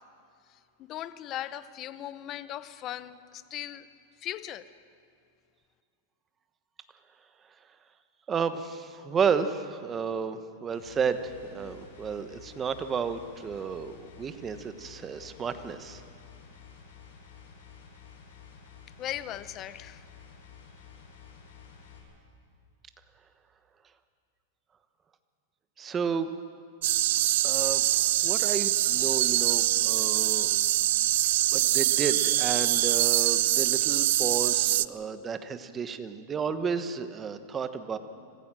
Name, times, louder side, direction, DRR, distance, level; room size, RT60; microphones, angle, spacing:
voice 1, 0.8-3.9 4.2-4.7 19.0-20.0, left 12 dB, 35° left, 14 dB, 0.8 m, -38 dB
voice 2, 8.3-16.0 25.8-26.3 27.4-27.9 28.2-30.5 31.5-38.0, right 6 dB, 20° right, 10 dB, 1.1 m, -32 dB
sound 1, 10.7-22.0, left 6 dB, 75° left, 6.6 m, -51 dB
sound 2, 26.8-34.9, right 15 dB, 65° right, 0.5 m, -24 dB
26.0 x 15.5 x 7.6 m, 2.4 s
supercardioid pair, 140°, 0 cm